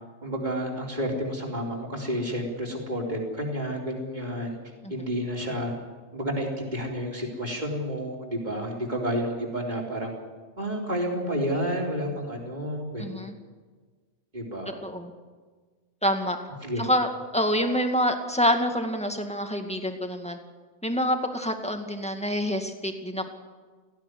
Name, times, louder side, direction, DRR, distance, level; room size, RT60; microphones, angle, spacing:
voice 1, 0.2-4.6 4.9-5.7 6.1-10.1 10.6-13.3 14.3-14.8 16.6-16.9, equal, 40° right, 0 dB, 4.2 m, -30 dB
voice 2, 13.0-13.3 14.8-15.1 16.0-16.4 16.8-17.1 17.3-20.4 20.8-23.3, equal, 5° left, 4 dB, 2.0 m, -26 dB
17.5 x 16.0 x 9.8 m, 1.4 s
omnidirectional pair, 1.1 m